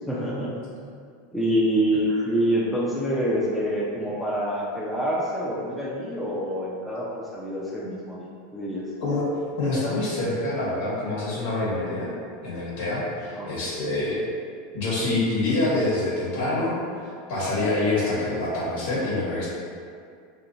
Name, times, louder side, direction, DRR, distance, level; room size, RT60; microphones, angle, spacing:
voice 1, 0.1-0.5 1.3-8.8 13.4-13.5, equal, 5° left, -6 dB, 0.6 m, -26 dB
voice 2, 9.6-12.1 12.4-14.2 14.7-19.5, left 2 dB, 65° left, -8 dB, 1.4 m, -26 dB
2.9 x 2.6 x 3.9 m, 2.2 s
hypercardioid pair, 100°, 0 cm